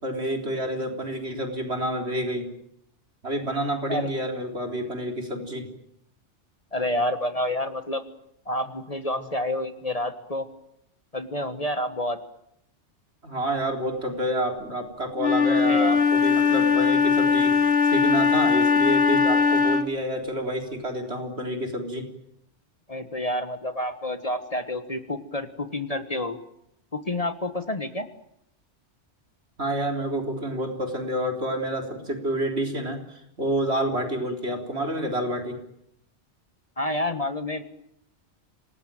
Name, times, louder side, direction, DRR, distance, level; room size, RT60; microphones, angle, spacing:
voice 1, 0.0-2.5 3.2-5.7 9.1-9.2 13.2-22.1 29.6-35.6, right 1 dB, 60° right, 4 dB, 4.2 m, -29 dB
voice 2, 6.7-8.0 8.5-10.5 11.1-12.2 15.5-15.9 22.9-26.4 26.9-28.1 36.8-37.6, left 1 dB, 30° left, 9 dB, 1.6 m, -29 dB
Wind instrument woodwind instrument, 15.2-20.0, left 5 dB, 60° left, 1.7 m, -20 dB
26.5 x 18.5 x 9.0 m, 0.77 s
omnidirectional pair, 1.2 m